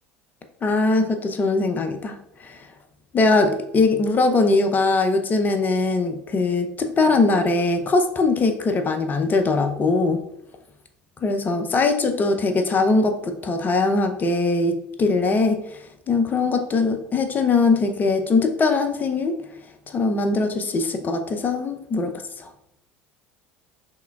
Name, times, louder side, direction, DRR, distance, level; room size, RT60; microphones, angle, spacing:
voice 1, 0.6-2.1 3.1-10.2 11.2-15.6 16.1-19.4 19.9-22.1 22.4-22.5, left 3 dB, 30° left, 6 dB, 0.7 m, -21 dB
5.6 x 3.4 x 2.3 m, 0.80 s
figure-of-eight pair, 70°, 6 cm